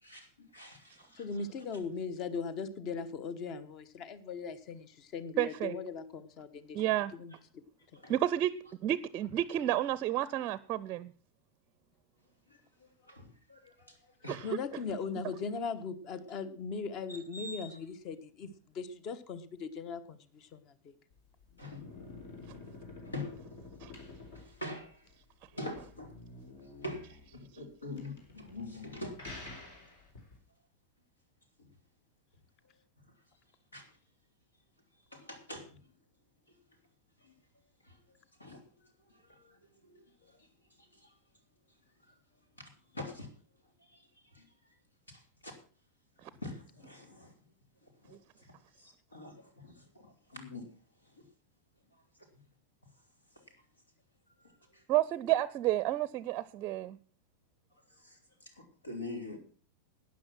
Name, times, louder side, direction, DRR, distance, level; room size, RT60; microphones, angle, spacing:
voice 1, 0.0-1.2 7.9-8.1 12.5-14.5 17.1-17.8 21.6-21.8 23.0-23.3 24.3-25.1 25.5-26.1 26.8-29.3 31.6-31.7 33.7-33.8 35.1-35.8 37.2-37.3 37.8-38.0 38.4-38.6 39.2-39.6 39.8-40.5 40.9-41.1 42.6-42.7 42.9-43.3 43.8-44.1 44.3-44.5 45.1-45.5 46.3-47.3 47.8-50.7 51.1-51.2 53.4-53.5 54.4-54.8 57.9-59.4, left 2 dB, 80° left, 4 dB, 3.2 m, -45 dB
voice 2, 1.2-6.8 7.1-7.3 8.1-8.2 14.4-20.7, left 5 dB, 40° left, 14 dB, 1.2 m, -39 dB
voice 3, 5.4-5.8 6.7-7.1 8.1-8.5 8.8-11.1 14.3-14.6 23.8-23.9 46.2-46.3 54.9-57.0, right 13 dB, 35° right, 18 dB, 0.5 m, -30 dB
sound 1, 21.1-30.4, left 3 dB, 60° left, 4.2 m, -50 dB
12.5 x 9.7 x 6.0 m, 0.41 s
figure-of-eight pair, 90°, 0 cm